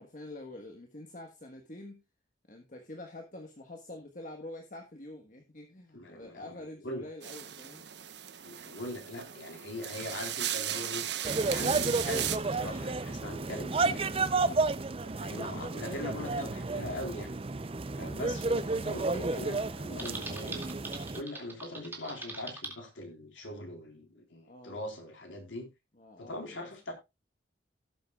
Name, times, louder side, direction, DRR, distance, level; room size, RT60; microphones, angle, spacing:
voice 1, 0.0-2.0 2.5-7.8 13.9-14.0 18.4-18.9 24.5-24.8 26.0-26.7, left 1 dB, 45° left, 1.4 m, -46 dB
voice 2, 5.9-6.5 6.8-7.1 8.4-11.1 11.5-14.1 15.0-17.3 17.9-20.6 21.1-25.7 26.2-26.9, left 1 dB, 85° left, 4.0 m, -41 dB
sound 1, 7.2-12.4, right 11 dB, 65° right, 1.0 m, -36 dB
sound 2, 11.2-21.2, right 3 dB, 30° right, 0.5 m, -32 dB
Typing, 20.0-22.7, right 3 dB, 10° right, 2.3 m, -42 dB
17.0 x 7.9 x 2.4 m
head